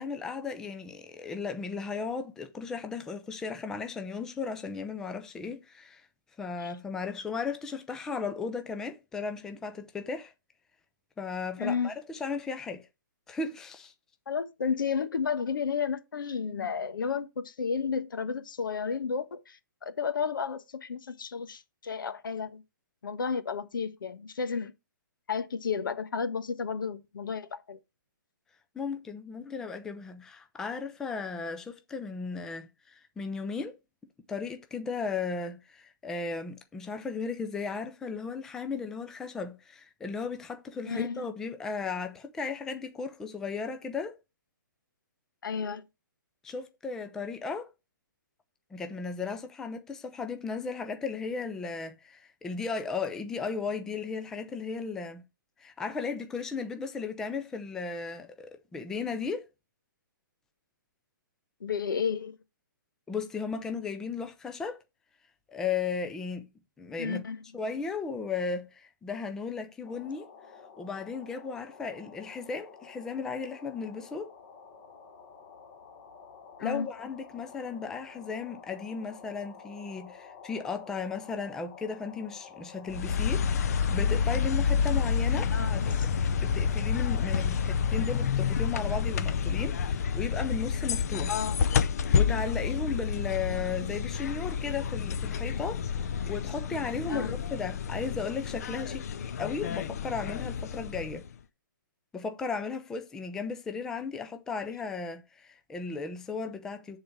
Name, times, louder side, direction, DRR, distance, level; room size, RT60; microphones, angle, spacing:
voice 1, 0.0-6.1 6.4-10.3 11.2-12.9 13.3-13.9 28.8-33.8 34.3-44.2 46.4-47.7 48.7-55.2 55.6-59.4 63.1-64.8 65.5-66.5 66.8-67.2 67.5-70.3 70.8-74.3 76.6-86.0 86.4-91.4 92.1-99.1 99.4-101.2 102.1-107.0, left 5 dB, 5° left, 0.4 m, -35 dB
voice 2, 11.6-11.9 14.3-22.6 23.0-24.7 25.3-27.8 40.8-41.3 45.4-45.8 61.6-62.3 67.0-67.4 76.6-76.9 85.5-85.7 87.4-87.5 91.3-91.6 97.1-97.3, left 6 dB, 80° left, 1.3 m, -32 dB
sound 1, 69.8-88.3, left 6 dB, 25° left, 1.3 m, -51 dB
sound 2, 82.9-101.4, left 6 dB, 50° left, 0.7 m, -29 dB
10.5 x 4.0 x 4.6 m
hypercardioid pair, 165°, 11 cm